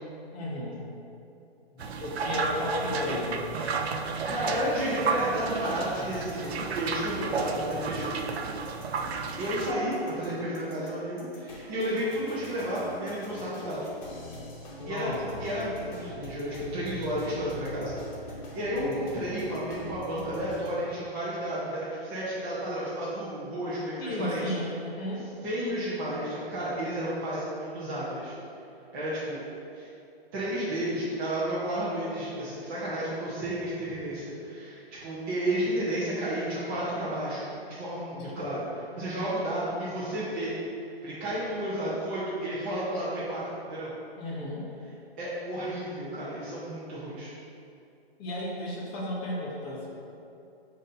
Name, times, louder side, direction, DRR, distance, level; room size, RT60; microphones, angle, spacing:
voice 1, 0.3-0.8 1.7-3.4 7.2-7.5 14.8-15.5 18.7-19.1 24.0-25.3 38.1-38.3 44.2-44.7 48.2-49.9, left 1 dB, 15° left, -6 dB, 0.7 m, -34 dB
sound 1, 1.8-9.7, right 5 dB, 85° right, 0.5 m, -32 dB
voice 2, 3.9-8.1 9.4-13.9 14.9-24.5 25.4-28.4 28.9-29.4 29.7-29.9 30.3-40.5 41.0-43.4 43.7-43.9 45.2-47.3, right 1 dB, 20° right, -10 dB, 0.6 m, -32 dB
sound 2, 4.5-20.8, left 1 dB, 45° left, 1.0 m, -43 dB
7.1 x 2.7 x 2.6 m, 2.6 s
hypercardioid pair, 145°, 31 cm